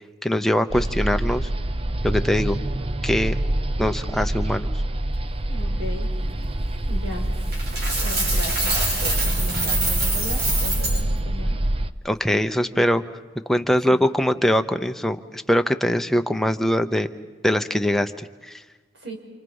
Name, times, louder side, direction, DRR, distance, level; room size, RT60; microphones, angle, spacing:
voice 1, 0.2-1.5 2.0-2.6 3.0-3.3 3.8-4.7 12.0-13.0 13.5-17.1 17.4-18.5, equal, ahead, 7 dB, 0.8 m, -22 dB
sound 1, 0.7-11.9, right 1 dB, 30° right, 0.7 m, -26 dB
voice 2, 5.5-6.1 6.9-7.3 8.0-8.7 9.0-11.6 12.3-12.5 13.9-14.0 18.9-19.2, left 1 dB, 85° right, 1 dB, 5.6 m, -36 dB
Coin (dropping), 7.5-11.0, right 2 dB, 60° right, 4.3 m, -25 dB
28.5 x 28.0 x 5.5 m, 1.3 s
head